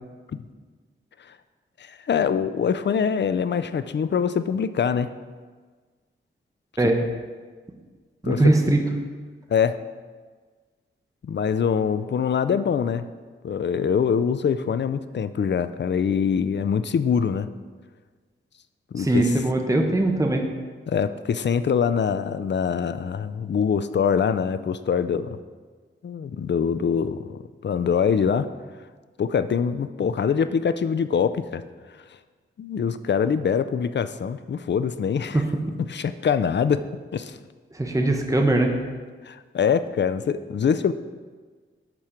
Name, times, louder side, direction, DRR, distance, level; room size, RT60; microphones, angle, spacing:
voice 1, 1.8-5.1 8.2-8.4 9.5-9.8 11.2-13.0 13.4-17.5 18.9-19.2 20.9-25.4 26.0-28.5 29.2-31.6 32.6-35.4 35.9-36.8 37.1-37.4 39.2-40.9, left 7 dB, 55° left, 12 dB, 0.5 m, -24 dB
voice 2, 8.2-8.8 19.0-20.4 35.3-35.5 37.7-38.7, right 2 dB, 15° right, 3 dB, 1.0 m, -20 dB
12.0 x 4.3 x 5.0 m, 1.5 s
cardioid pair, 65°, 21 cm